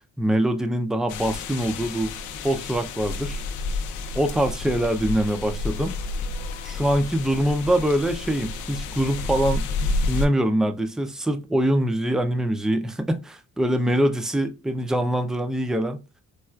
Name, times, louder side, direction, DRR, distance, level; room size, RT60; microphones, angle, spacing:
voice 1, 0.2-2.1 2.4-3.4 4.1-6.0 6.6-9.7 10.1-16.0, right 1 dB, ahead, 0.4 m, -24 dB
sound 1, 1.1-10.3, left 3 dB, 85° left, 0.5 m, -30 dB
4.4 x 2.3 x 2.3 m
cardioid pair, 90°, 30 cm